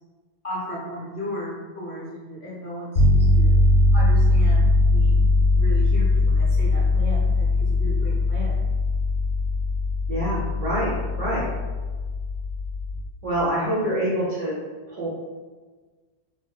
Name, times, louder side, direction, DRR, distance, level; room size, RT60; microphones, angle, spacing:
voice 1, 0.4-3.5 3.9-5.2 5.5-8.6, left 1 dB, 40° left, -9 dB, 0.5 m, -35 dB
sound 1, 3.0-13.1, left 2 dB, 75° left, 0.8 m, -20 dB
voice 2, 10.1-10.9 11.2-11.4 13.2-14.5 14.9-15.1, right 1 dB, 55° right, -8 dB, 0.4 m, -25 dB
2.7 x 2.0 x 2.2 m, 1.4 s
omnidirectional pair, 1.1 m